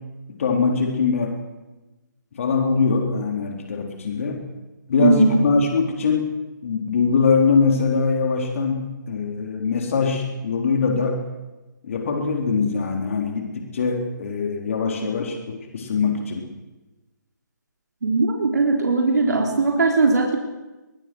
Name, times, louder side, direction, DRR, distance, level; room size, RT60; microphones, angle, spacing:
voice 1, 0.4-1.4 2.3-4.4 4.9-6.3 6.6-8.8 9.1-11.2 11.8-16.4, left 5 dB, 45° left, 2 dB, 3.8 m, -22 dB
voice 2, 5.0-5.4 18.0-20.4, right 3 dB, 60° right, 1 dB, 3.6 m, -19 dB
22.5 x 22.0 x 6.4 m, 1.1 s
figure-of-eight pair, 150°, 10 cm